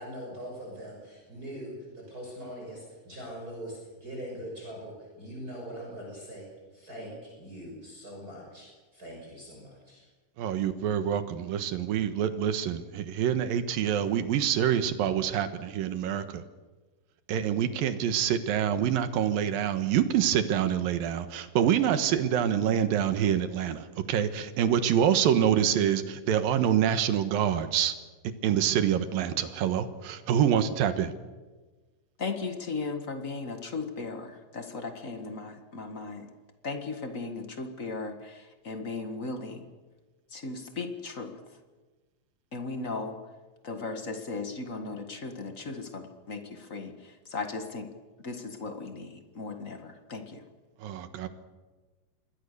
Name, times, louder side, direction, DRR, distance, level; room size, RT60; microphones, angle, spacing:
voice 1, 0.0-6.5 6.7-10.1, equal, 25° right, -2 dB, 6.8 m, -42 dB
voice 2, 10.4-16.4 17.3-27.9 28.4-31.1 50.8-51.3, right 9 dB, 90° right, 10 dB, 3.1 m, -26 dB
voice 3, 32.2-36.3 36.6-39.6 40.3-41.6 42.5-43.2 43.6-47.9 48.2-50.4, left 3 dB, 35° left, 6 dB, 1.3 m, -37 dB
26.5 x 21.5 x 6.8 m, 1.3 s
omnidirectional pair, 4.0 m